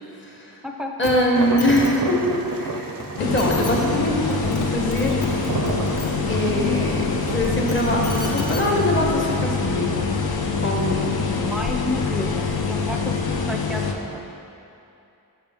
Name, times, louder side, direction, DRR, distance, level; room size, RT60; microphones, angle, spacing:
voice 1, 0.1-0.6 1.0-5.2 6.3-10.0 10.6-11.3, equal, 30° left, -2 dB, 1.1 m, -23 dB
sound 1, 1.0-1.1 1.4-1.9 3.0-3.1 3.4-3.7 4.3-4.6 4.9-6.1 7.4-8.6 9.6-9.7, left 2 dB, 55° left, 1.1 m, -31 dB
sound 2, 1.3-9.4, right 4 dB, 65° right, 0.6 m, -32 dB
sound 3, 3.2-13.9, left 5 dB, 80° left, 0.6 m, -25 dB
voice 2, 11.0-14.2, left 1 dB, ahead, 2 dB, 0.5 m, -31 dB
6.7 x 5.7 x 3.4 m, 2.7 s
wide cardioid pair, 85°, 37 cm